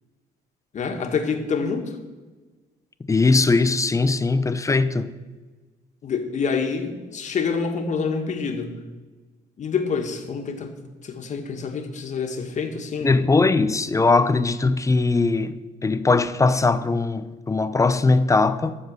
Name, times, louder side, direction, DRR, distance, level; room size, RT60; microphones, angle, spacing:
voice 1, 0.7-2.0 6.0-8.7 9.6-10.7 11.0-13.2, left 5 dB, 45° left, 1.8 m, -27 dB
voice 2, 3.0-5.1 13.0-18.8, left 3 dB, 20° left, 0.6 m, -20 dB
14.0 x 7.1 x 6.7 m
cardioid pair, 110°, 17 cm